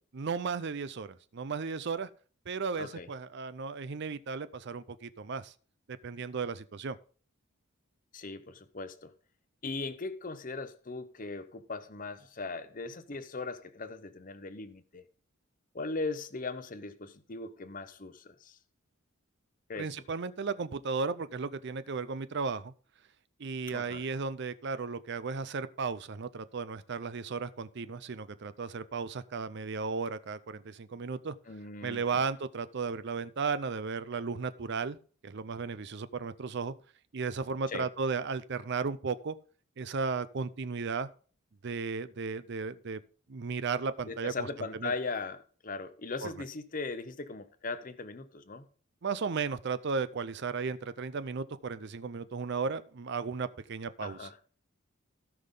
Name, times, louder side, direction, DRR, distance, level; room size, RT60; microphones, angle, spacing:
voice 1, 0.2-2.1 2.5-5.5 6.0-7.0 19.8-22.7 23.4-31.3 31.8-35.0 35.2-36.7 37.1-39.4 39.8-41.1 41.6-43.0 43.3-44.3 44.8-44.9 46.2-46.3 49.0-54.3, right 5 dB, 55° right, 0.5 m, -35 dB
voice 2, 2.8-3.1 8.1-9.1 9.6-15.0 15.7-18.6 19.7-19.9 23.7-24.1 31.5-32.3 37.7-37.9 44.1-48.6 54.0-54.4, left 3 dB, 40° left, 0.8 m, -39 dB
16.5 x 5.7 x 3.8 m
head